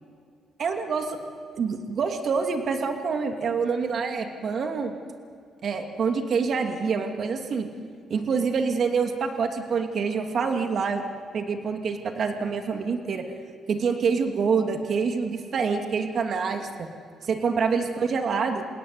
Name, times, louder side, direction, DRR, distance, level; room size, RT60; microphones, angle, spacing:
voice 1, 0.6-1.2 1.6-4.9 5.6-7.7 8.1-11.0 11.3-13.2 13.7-16.9 17.2-18.6, right 5 dB, 55° right, 4 dB, 2.6 m, -26 dB
28.5 x 17.5 x 9.6 m, 2.2 s
cardioid pair, 90°, 0 cm